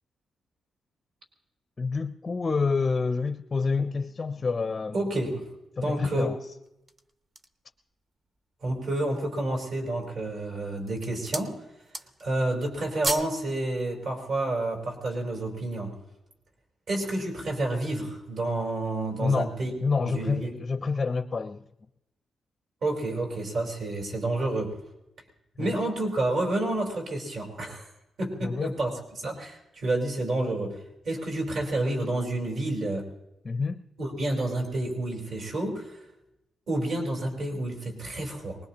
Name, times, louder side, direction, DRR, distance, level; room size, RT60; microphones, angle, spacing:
voice 1, 1.8-5.0 5.8-6.4 19.2-19.6 19.8-21.6 25.6-25.8 28.4-28.7 33.4-33.8, left 4 dB, 25° left, 0.4 m, -28 dB
voice 2, 4.9-5.4 5.8-6.3 8.6-11.6 12.2-16.0 16.9-19.7 20.0-20.5 22.8-24.7 25.6-27.9 28.2-28.9 29.2-33.1 34.0-36.0 36.7-38.6, right 2 dB, 60° right, 4.0 m, -29 dB
sound 1, 6.7-7.7 8.3-8.4 8.8-9.4 10.1-10.4 10.8-11.5 11.8-12.3 12.6-13.4 13.7-13.9, right 2 dB, 30° right, 0.7 m, -35 dB
23.5 x 20.0 x 2.9 m
wide cardioid pair, 160°, 0 cm